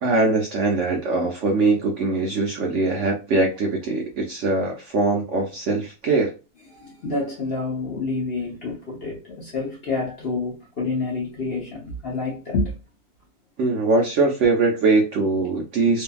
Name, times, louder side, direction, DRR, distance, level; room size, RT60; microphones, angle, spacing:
voice 1, 0.0-6.3 13.6-16.0, right 3 dB, 65° right, 0.8 m, -22 dB
voice 2, 6.7-12.7, left 3 dB, 50° left, 0.8 m, -28 dB
2.7 x 2.5 x 2.2 m
omnidirectional pair, 1.7 m